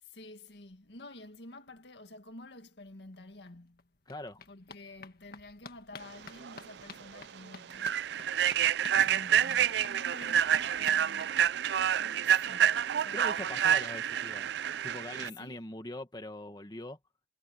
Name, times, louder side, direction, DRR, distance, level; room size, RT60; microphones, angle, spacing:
voice 1, 0.0-3.9 4.5-8.0 9.0-11.4 12.0-13.2 15.2-15.6, left 2 dB, 70° left, 1.9 m, -50 dB
sound 1, 3.1-3.2 3.5-11.9 12.2-12.3 12.6-12.7 12.9-13.0, left 4 dB, 55° left, 1.8 m, -52 dB
voice 2, 4.1-4.4 13.1-14.5 14.8-17.0, left 1 dB, 25° left, 1.9 m, -42 dB
Human voice / Train, 6.4-6.6 7.0-7.2 7.7-15.3, right 9 dB, 65° right, 0.3 m, -28 dB
head